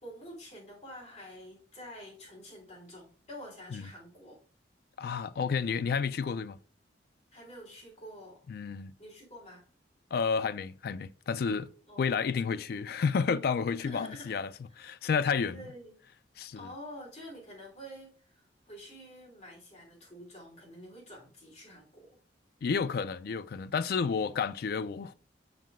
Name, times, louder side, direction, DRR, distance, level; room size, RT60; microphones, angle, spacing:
voice 1, 0.0-4.4 7.3-8.4 9.0-9.6 11.9-12.1 13.8-14.4 14.7-14.9 15.5-16.0 16.5-22.2, equal, 40° left, 3.3 m, -48 dB
voice 2, 5.0-6.6 8.5-8.9 10.1-11.7 12.0-14.5 14.8-15.6 16.4-16.7 22.6-25.1, left 5 dB, 55° left, 0.3 m, -31 dB
7.4 x 5.5 x 2.5 m
head